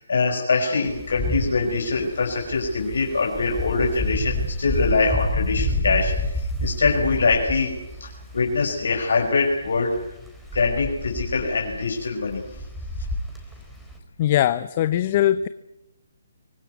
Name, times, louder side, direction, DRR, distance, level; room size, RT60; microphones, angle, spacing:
voice 1, 0.0-7.7 8.0-10.0 10.5-12.4, left 4 dB, 75° left, 1 dB, 5.2 m, -23 dB
Wind, 0.8-14.0, left 1 dB, ahead, 4.1 m, -30 dB
voice 2, 14.2-15.5, left 12 dB, 35° left, 14 dB, 0.8 m, -20 dB
24.5 x 18.5 x 9.4 m, 0.91 s
hypercardioid pair, 150°, 0 cm